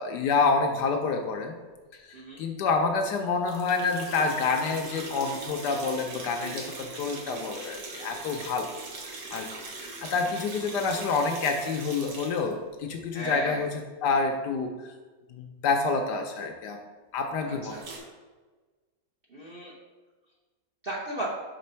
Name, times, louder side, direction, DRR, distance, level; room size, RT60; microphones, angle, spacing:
voice 1, 0.0-1.6 1.9-8.7 9.3-9.5 9.8-14.9 15.3-16.8 17.1-17.7, left 4 dB, 75° left, 4 dB, 1.1 m, -28 dB
sound 1, 3.5-12.5 17.7-18.0, right 3 dB, 70° right, 1.6 m, -41 dB
voice 2, 6.4-6.7 13.1-13.7 17.5-18.1 19.3-19.7 20.8-21.2, right 2 dB, 45° right, -4 dB, 0.7 m, -36 dB
5.1 x 3.7 x 5.5 m, 1.3 s
omnidirectional pair, 2.1 m